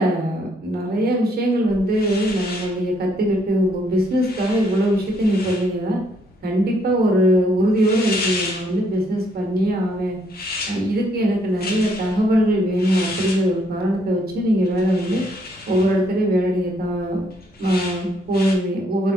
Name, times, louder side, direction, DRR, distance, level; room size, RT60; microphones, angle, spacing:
voice 1, 0.0-6.0 6.4-10.2 10.7-15.2 15.7-17.2 17.6-19.1, equal, 50° right, 0 dB, 1.4 m, -20 dB
sound 1, 1.6-18.6, left 3 dB, 50° left, 0.9 m, -35 dB
4.5 x 3.7 x 2.7 m, 0.73 s
cardioid pair, 90°, 20 cm